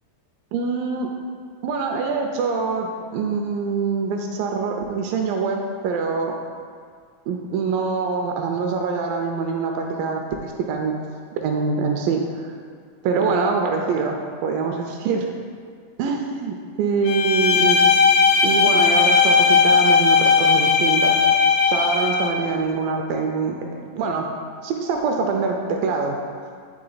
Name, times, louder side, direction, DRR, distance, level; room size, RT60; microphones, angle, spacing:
voice 1, 0.5-1.1 1.6-6.3 7.3-11.0 11.4-12.5 13.0-14.2 14.4-15.3 16.0-17.9 18.4-21.1 21.7-23.6 23.9-24.2 24.6-26.2, right 5 dB, 80° right, 2 dB, 2.1 m, -24 dB
Bowed string instrument, 17.1-22.4, left 5 dB, 80° left, 1.9 m, -17 dB
9.9 x 3.5 x 3.9 m, 2.1 s
omnidirectional pair, 4.2 m